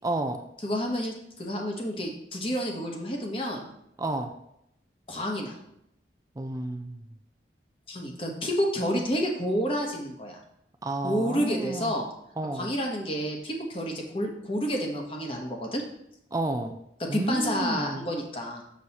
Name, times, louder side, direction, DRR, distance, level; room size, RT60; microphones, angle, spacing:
voice 1, 0.0-0.4 4.0-4.3 6.4-7.0 10.8-11.9 12.4-12.7 16.3-16.8 17.1-18.1, right 2 dB, 20° right, 5 dB, 0.4 m, -31 dB
voice 2, 0.6-3.7 5.1-5.6 7.9-10.4 11.0-12.1 12.5-15.8 17.1-18.6, equal, 30° left, 1 dB, 1.0 m, -29 dB
6.7 x 6.2 x 2.9 m, 0.77 s
head